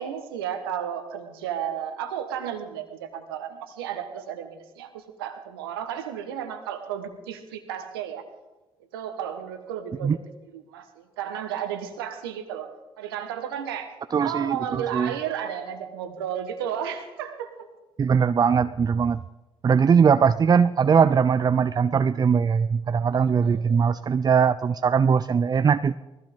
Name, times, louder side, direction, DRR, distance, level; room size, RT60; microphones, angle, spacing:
voice 1, 0.0-8.2 8.9-10.2 10.5-12.7 13.0-13.9 14.2-17.7 23.2-24.0, right 9 dB, 85° right, 7 dB, 1.3 m, -33 dB
voice 2, 14.1-15.1 18.0-19.2 19.6-25.9, right 6 dB, 35° right, 12 dB, 0.5 m, -20 dB
20.5 x 15.5 x 3.6 m, 1.1 s
hypercardioid pair, 50°, 12 cm